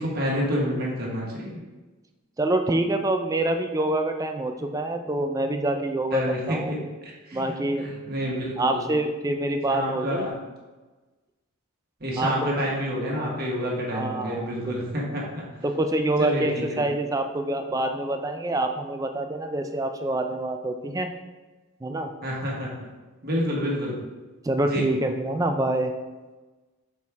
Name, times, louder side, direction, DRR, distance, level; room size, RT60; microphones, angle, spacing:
voice 1, 0.0-1.6 6.1-6.8 7.0-7.5 7.8-8.8 9.7-10.3 12.0-15.4 16.2-16.8 22.2-22.7 23.2-24.0 24.6-24.8, equal, 45° right, -3 dB, 1.4 m, -28 dB
voice 2, 2.4-6.7 7.3-7.9 8.6-10.3 12.2-12.5 13.9-14.8 15.6-21.1 21.8-22.1 24.4-25.9, right 1 dB, 15° right, 5 dB, 0.3 m, -26 dB
6.4 x 4.2 x 3.5 m, 1.2 s
head